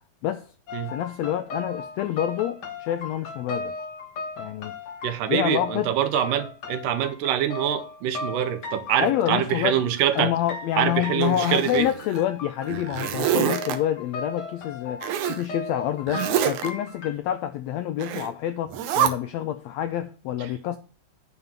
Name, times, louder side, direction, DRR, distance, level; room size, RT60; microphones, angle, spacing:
sound 1, 0.7-17.2, left 3 dB, 70° left, 1.0 m, -37 dB
voice 1, 0.8-3.7 4.4-4.7 5.3-5.9 9.0-9.8 10.1-20.8, left 11 dB, 90° left, 1.5 m, -27 dB
voice 2, 5.0-10.3 10.8-11.9, right 10 dB, 85° right, 2.5 m, -25 dB
Zipper (clothing), 11.2-12.2 12.6-13.8 15.0-15.4 16.1-16.7 18.0-18.3 18.7-19.1, right 10 dB, 70° right, 2.2 m, -26 dB
9.3 x 3.7 x 7.1 m
omnidirectional pair, 3.7 m